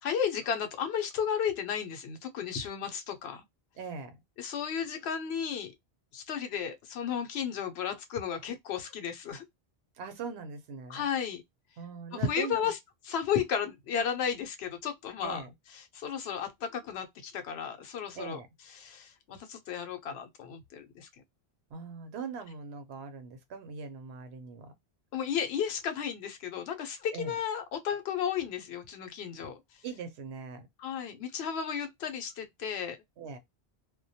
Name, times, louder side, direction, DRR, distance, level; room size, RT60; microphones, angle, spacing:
voice 1, 0.0-3.4 4.4-5.7 6.1-9.4 10.9-11.4 12.2-12.8 13.1-15.4 15.9-18.4 18.7-21.1 25.1-29.6 30.8-33.0, left 8 dB, 80° left, 0.8 m, -33 dB
voice 2, 3.8-4.2 10.0-11.1 11.8-12.7 15.2-15.5 18.1-18.5 21.7-24.7 27.1-27.4 29.8-30.7 33.2-33.4, right 5 dB, 85° right, 0.9 m, -41 dB
2.2 x 2.2 x 2.6 m
omnidirectional pair, 1.1 m